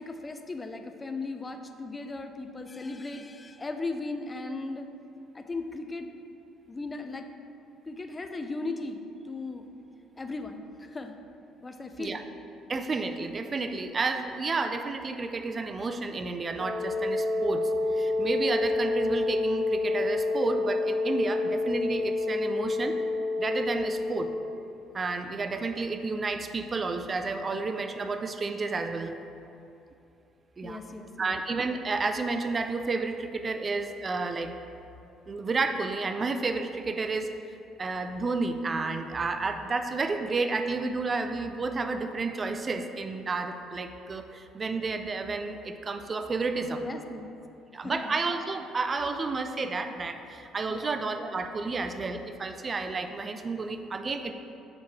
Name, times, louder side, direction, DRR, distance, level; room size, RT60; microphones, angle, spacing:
voice 1, 0.0-4.9 5.3-6.2 6.7-7.3 7.9-9.6 10.2-11.2 11.6-12.2 23.8-24.0 30.6-31.4 46.7-47.3 47.8-48.2 50.7-51.0, left 3 dB, 25° left, 6 dB, 0.5 m, -37 dB
voice 2, 12.7-23.0 23.4-24.3 24.9-29.2 30.6-30.8 31.2-34.5 35.3-37.3 37.8-46.8 47.7-54.3, right 3 dB, 35° right, 7 dB, 0.4 m, -31 dB
Wind instrument woodwind instrument, 16.6-24.4, left 2 dB, 55° right, 1.1 m, -28 dB
8.7 x 3.2 x 3.5 m, 2.7 s
supercardioid pair, 75°, 0 cm